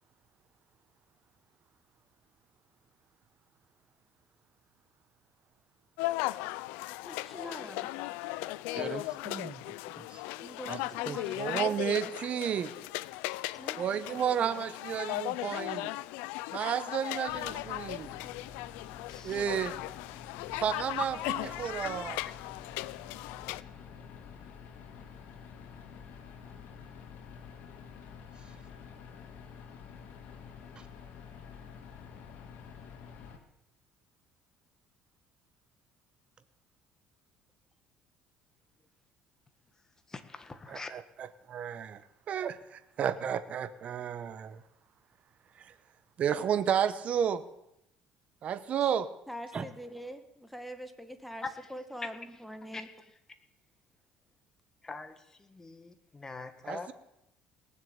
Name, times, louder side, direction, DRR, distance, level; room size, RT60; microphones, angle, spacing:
sound 1, 6.0-23.6, left 19 dB, 90° left, 0.4 m, -37 dB
voice 1, 7.0-7.9 10.4-12.4 13.6-13.8 14.1-14.3 48.8-48.9 49.3-52.9, equal, ahead, 8 dB, 1.8 m, -44 dB
voice 2, 8.8-10.2 10.7-10.8 11.1-11.2 28.4-28.5 30.8-30.9 49.5-49.7, right 5 dB, 30° right, 12 dB, 1.3 m, -41 dB
voice 3, 11.4-12.7 13.8-15.9 16.5-18.1 19.2-19.7 20.6-22.2 40.7-42.0 42.3-44.6 45.6-45.7 46.2-47.4 48.4-49.1 56.6-56.9, right 8 dB, 50° right, 13 dB, 1.1 m, -32 dB
sound 2, 17.3-33.4, left 6 dB, 65° left, 2.4 m, -49 dB
voice 4, 19.1-19.4 21.8-21.9 40.1-40.9 52.7-52.8 54.8-55.1 55.5-56.9, left 3 dB, 20° left, 9 dB, 1.7 m, -43 dB
19.0 x 7.3 x 8.9 m, 0.84 s
cardioid pair, 100°, 3 cm